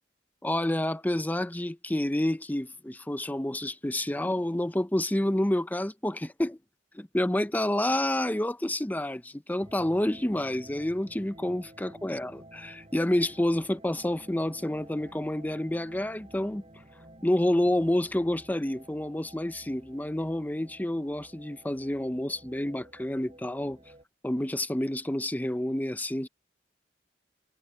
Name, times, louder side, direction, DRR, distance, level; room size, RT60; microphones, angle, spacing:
voice 1, 0.4-6.6 6.9-16.6 17.2-23.8 24.2-26.3, left 1 dB, 10° left, 0.7 m, -29 dB
sound 1, 9.6-24.0, right 1 dB, 35° right, 7.3 m, -52 dB
head